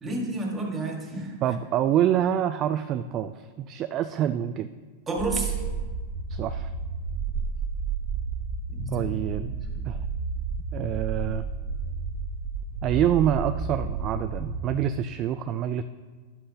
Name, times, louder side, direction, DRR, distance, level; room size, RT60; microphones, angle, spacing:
voice 1, 0.0-1.4 5.1-5.5 8.7-9.4 9.8-9.9, right 2 dB, 20° right, 0 dB, 1.8 m, -31 dB
voice 2, 1.4-4.7 6.3-6.7 8.9-9.5 9.8-10.0 10.7-11.4 12.8-15.8, right 10 dB, 35° right, 10 dB, 0.3 m, -26 dB
sound 1, 5.2-14.7, right 4 dB, 60° right, 0.8 m, -31 dB
12.0 x 7.8 x 2.9 m, 1.4 s
hypercardioid pair, 130°, 0 cm